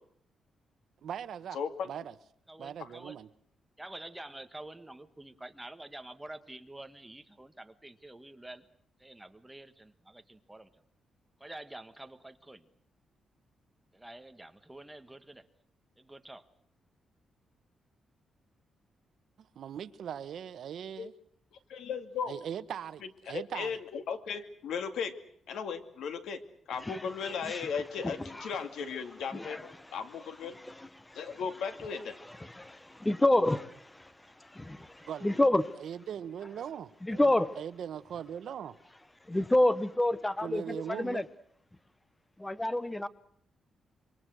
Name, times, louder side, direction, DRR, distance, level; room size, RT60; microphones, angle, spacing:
voice 1, 1.0-1.6 1.8-2.1 2.6-3.3 19.5-21.1 22.3-23.8 35.0-35.4 35.8-38.7 40.4-41.2, right 9 dB, 65° right, 13 dB, 1.2 m, -40 dB
voice 2, 1.5-1.9 21.0-21.1 21.7-22.3 23.3-25.1 25.5-26.4 26.7-30.6 31.1-32.2, left 6 dB, 85° left, 9 dB, 2.4 m, -36 dB
voice 3, 2.5-3.2 3.8-8.7 9.0-10.7 11.4-12.6 13.9-15.5 16.0-16.5, right 1 dB, 5° right, 8 dB, 1.4 m, -48 dB
voice 4, 26.8-27.7 28.0-28.7 29.3-29.9 30.4-31.4 32.3-35.7 37.0-37.5 39.3-41.2 42.4-43.1, left 1 dB, 10° left, 15 dB, 0.9 m, -30 dB
26.5 x 24.5 x 6.3 m, 0.67 s
wide cardioid pair, 160°, 0 cm